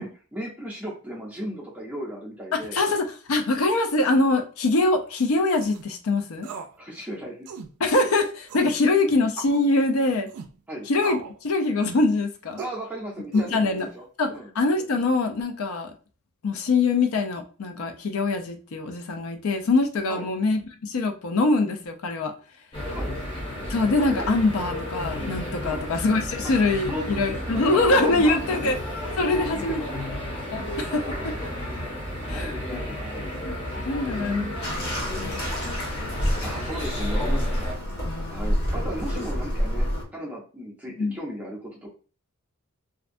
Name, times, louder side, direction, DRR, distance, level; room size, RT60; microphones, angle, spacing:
voice 1, 0.0-2.8 6.8-7.5 10.7-10.9 12.6-13.7 14.0-14.1 14.3-14.5 20.1-20.3 22.9-23.1 25.6-25.8 26.9-28.6 29.2-30.0 32.3-33.3 34.0-34.7 36.2-37.4 38.3-39.9 40.1-41.9, right 1 dB, 5° right, 0.5 m, -36 dB
voice 2, 2.5-6.5 7.8-10.3 10.9-12.6 13.3-13.9 14.2-15.9 16.4-22.3 23.7-28.8 29.2-29.8 30.5-31.3 32.3-32.8 33.4-33.5 33.9-34.5 35.2-35.5 38.0-38.7 41.0-41.2, left 3 dB, 70° left, 0.5 m, -24 dB
sound 1, 5.5-5.9 6.4-6.8 7.0-7.1 7.5-7.7 8.5-8.7 9.4-9.6 10.3-10.5 11.0-11.4 11.8-12.1 12.6-12.8 13.3-13.8, right 5 dB, 80° right, 0.4 m, -38 dB
sound 2, 22.7-37.7, left 1 dB, 25° left, 0.7 m, -32 dB
Bathtub (filling or washing), 34.6-40.0, equal, 50° left, 1.0 m, -28 dB
2.5 x 2.2 x 2.5 m
head